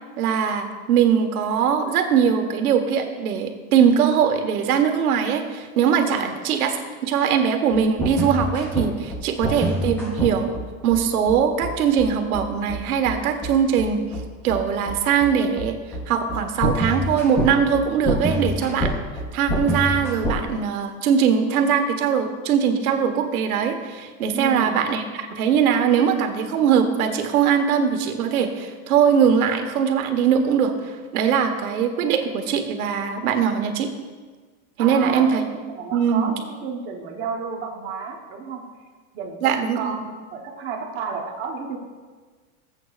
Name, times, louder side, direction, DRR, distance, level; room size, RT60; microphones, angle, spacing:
voice 1, 0.2-10.5 10.8-14.0 14.4-15.8 16.1-18.9 19.3-33.9 34.8-35.4 35.9-36.3 39.4-39.9, right 7 dB, 85° right, 5 dB, 1.5 m, -21 dB
voice 2, 6.1-6.4 24.3-24.8 34.8-38.6 39.1-41.8, right 5 dB, 25° right, 1 dB, 1.0 m, -32 dB
sound 1, 7.7-20.4, equal, 5° left, 0.4 m, -26 dB
18.5 x 8.2 x 2.4 m, 1.4 s
supercardioid pair, 175°, 42 cm